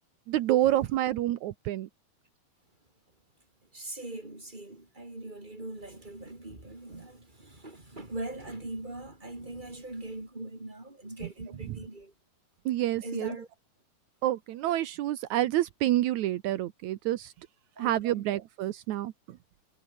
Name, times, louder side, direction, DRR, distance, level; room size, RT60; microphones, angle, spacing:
voice 1, 0.3-1.9 11.7-11.8 12.6-13.3 14.2-17.3 17.8-19.4, right 14 dB, 85° right, 1.6 m, -28 dB
voice 2, 3.7-12.1 13.0-13.5 17.7-18.2, right 2 dB, 10° right, 4.9 m, -41 dB
omnidirectional pair, 4.7 m